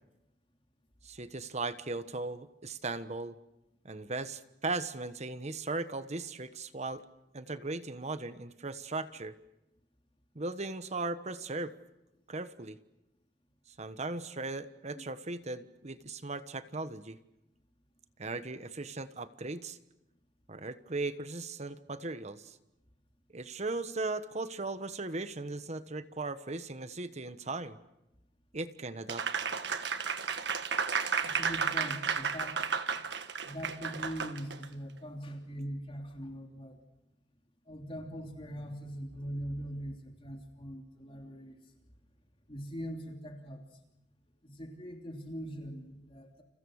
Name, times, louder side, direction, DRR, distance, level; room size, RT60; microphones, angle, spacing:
voice 1, 1.0-3.3 3.8-7.0 7.3-9.3 10.3-11.7 12.3-12.8 13.8-17.2 18.2-19.8 20.5-22.6 23.3-27.8 28.5-29.2, right 3 dB, 40° right, 11 dB, 1.2 m, -37 dB
Applause, 29.1-34.6, right 5 dB, 65° right, 1.6 m, -33 dB
voice 2, 31.2-32.6 33.4-36.8 37.7-41.6 42.5-43.6 44.4-46.4, equal, 30° left, 2 dB, 3.1 m, -41 dB
30.0 x 29.0 x 6.5 m, 0.92 s
head